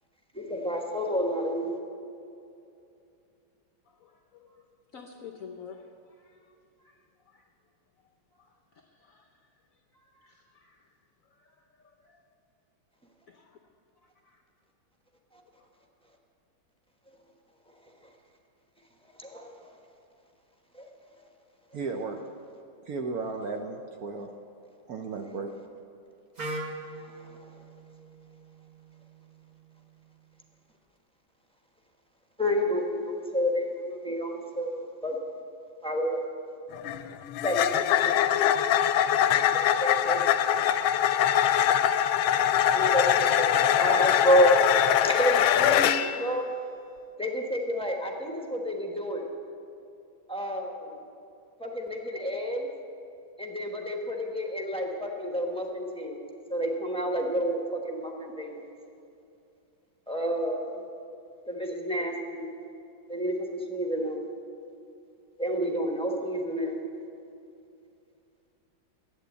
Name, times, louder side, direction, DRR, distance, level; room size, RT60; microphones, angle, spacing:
voice 1, 0.3-1.8 19.2-19.6 20.7-20.9 32.4-35.2 35.8-36.2 37.4-38.4 39.3-40.2 42.7-44.5 45.0-46.5 47.2-49.3 50.3-51.0 51.6-52.7 53.4-56.2 56.5-58.7 60.1-60.8 61.5-62.5 63.1-64.3 65.4-66.8, equal, 5° left, 0 dB, 0.7 m, -29 dB
voice 2, 3.9-4.7 4.9-5.9 6.2-7.5 8.3-9.3 9.9-10.9 11.3-12.2 13.3-13.6 14.0-14.4 15.6-15.7, left 6 dB, 65° left, 4 dB, 0.8 m, -51 dB
voice 3, 21.7-22.2 22.8-24.3 24.9-25.5, right 4 dB, 60° right, 4 dB, 1.0 m, -34 dB
Wind instrument woodwind instrument, 26.4-30.2, right 2 dB, 35° right, 0.7 m, -42 dB
sound 1, 36.7-46.2, left 10 dB, 90° left, 1.4 m, -23 dB
11.0 x 9.0 x 8.2 m, 2.6 s
omnidirectional pair, 2.2 m